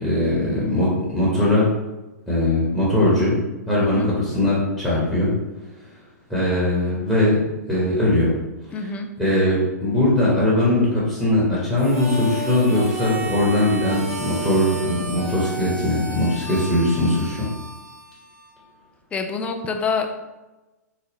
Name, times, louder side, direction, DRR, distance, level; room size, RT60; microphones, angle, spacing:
voice 1, 0.0-1.7 2.3-3.4 3.7-5.3 6.3-7.4 7.7-8.3 9.2-17.5, left 1 dB, 5° right, -9 dB, 1.1 m, -20 dB
voice 2, 8.7-9.1 19.1-20.2, left 5 dB, 15° left, 5 dB, 0.3 m, -26 dB
Harmonica, 11.8-18.7, right 2 dB, 65° right, 1.0 m, -32 dB
3.9 x 2.1 x 3.4 m, 1.1 s
hypercardioid pair, 115°, 9 cm